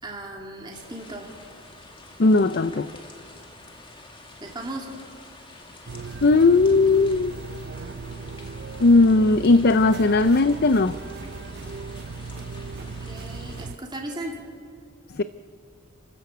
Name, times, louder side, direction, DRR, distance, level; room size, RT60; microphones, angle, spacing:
voice 1, 0.0-1.3 4.4-5.0 12.8-14.5, right 1 dB, 20° right, 0 dB, 2.5 m, -36 dB
sound 1, 0.7-13.7, left 2 dB, 25° left, 2.3 m, -47 dB
voice 2, 2.2-2.9 6.2-7.3 8.8-11.0 15.1-15.2, left 3 dB, 50° left, 12 dB, 0.5 m, -17 dB
sound 2, 5.9-13.8, right 4 dB, 50° right, 0.6 m, -37 dB
30.0 x 13.5 x 8.0 m, 2.3 s
head